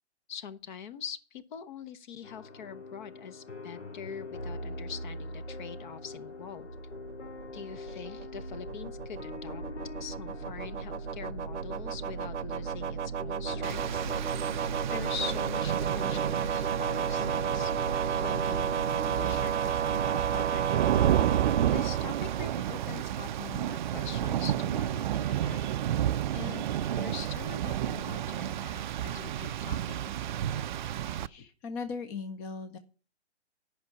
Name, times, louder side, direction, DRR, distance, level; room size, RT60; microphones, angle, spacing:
voice 1, 0.3-6.7 7.5-9.6 10.0-14.5 14.9-17.7 18.1-20.9 21.6-30.1, left 7 dB, 45° left, 1.0 m, -44 dB
sound 1, 2.2-19.4, left 2 dB, 75° left, 2.1 m, -42 dB
sound 2, 6.8-22.9, right 8 dB, 85° right, 0.8 m, -33 dB
Rain, 13.6-31.3, right 11 dB, 45° right, 0.4 m, -31 dB
voice 2, 31.2-32.8, left 4 dB, 15° left, 0.5 m, -38 dB
11.0 x 5.5 x 8.3 m
hypercardioid pair, 140°, 34 cm